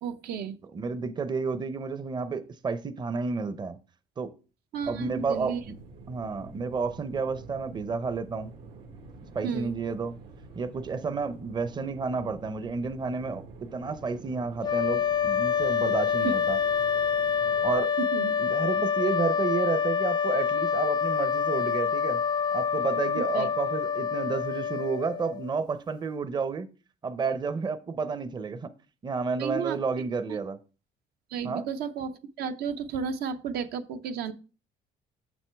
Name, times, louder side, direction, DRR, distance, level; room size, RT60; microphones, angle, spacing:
voice 1, 0.0-0.6 4.7-5.6 9.4-9.7 16.2-16.3 18.0-18.4 23.2-23.5 29.4-29.8 30.3-30.4 31.3-34.3, right 6 dB, 70° right, 0.6 m, -33 dB
voice 2, 0.7-3.8 4.2-4.3 4.9-5.7 6.1-8.5 9.3-10.1 10.5-16.6 17.6-17.9 18.4-22.2 22.5-26.7 27.0-28.7 29.0-30.6 31.4-31.7, right 4 dB, 25° right, 0.6 m, -31 dB
sound 1, 4.8-17.8, right 4 dB, 85° right, 1.7 m, -47 dB
sound 2, 14.6-25.5, left 7 dB, 25° left, 0.4 m, -27 dB
6.5 x 6.1 x 3.4 m
cardioid pair, 110°, 17 cm